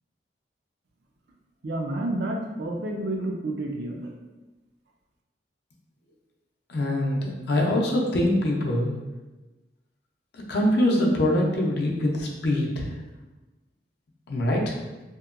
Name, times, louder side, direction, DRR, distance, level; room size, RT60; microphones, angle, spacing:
voice 1, 1.6-4.1, right 1 dB, 65° right, 1 dB, 0.4 m, -30 dB
voice 2, 6.7-8.9 10.5-12.9 14.3-14.8, left 1 dB, 65° left, -2 dB, 0.5 m, -24 dB
2.8 x 2.2 x 2.4 m, 1.1 s
head